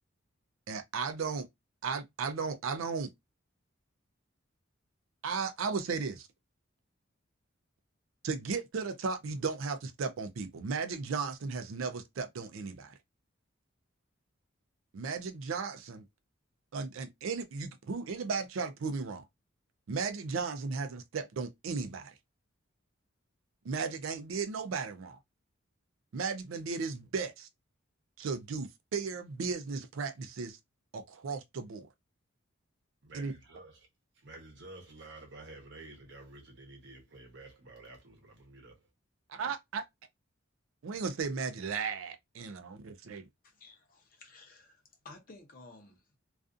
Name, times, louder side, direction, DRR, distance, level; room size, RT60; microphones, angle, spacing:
voice 1, 0.7-1.5 1.8-3.1 5.2-6.3 8.2-12.9 14.9-16.1 16.7-19.3 19.9-22.1 23.6-25.2 26.1-27.5 28.2-30.6 30.9-31.9 33.1-33.3 39.3-39.8 40.8-43.3, right 5 dB, 75° right, 0.4 m, -35 dB
voice 2, 33.0-33.9 34.2-38.9, right 2 dB, 55° right, 0.8 m, -51 dB
voice 3, 43.4-46.2, left 3 dB, 45° left, 0.7 m, -54 dB
2.4 x 2.4 x 2.4 m
head